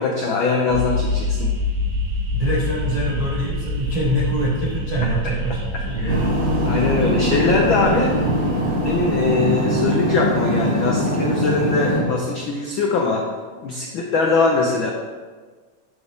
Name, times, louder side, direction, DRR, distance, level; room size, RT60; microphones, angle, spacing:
voice 1, 0.0-1.5 5.0-5.1 5.9-6.2 6.6-8.1 8.7-13.3 13.6-14.9, left 3 dB, 85° left, 0 dB, 1.1 m, -21 dB
sound 1, 0.7-9.9, left 1 dB, 85° right, 2.4 m, -27 dB
voice 2, 2.3-5.6 5.8-6.2, equal, 70° right, -5 dB, 0.3 m, -24 dB
sound 2, 6.1-12.0, equal, 20° left, 2.6 m, -22 dB
11.0 x 5.2 x 3.6 m, 1.4 s
omnidirectional pair, 3.3 m